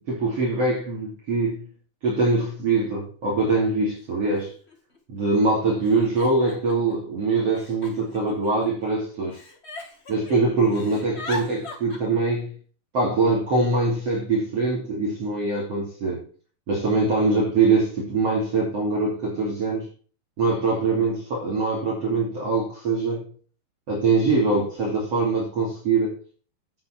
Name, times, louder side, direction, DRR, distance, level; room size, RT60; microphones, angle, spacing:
voice 1, 0.1-1.7 2.0-4.5 5.1-9.4 10.1-12.6 12.9-16.3 16.7-19.9 20.4-23.3 23.9-26.2, right 3 dB, 40° right, -4 dB, 3.5 m, -23 dB
Giggle, 3.2-3.3 4.3-4.4 4.7-5.2 5.8-6.9 7.5-8.9 9.3-10.4 10.6-12.0, left 2 dB, 45° left, 0.8 m, -39 dB
10.5 x 8.0 x 4.4 m, 0.40 s
omnidirectional pair, 4.4 m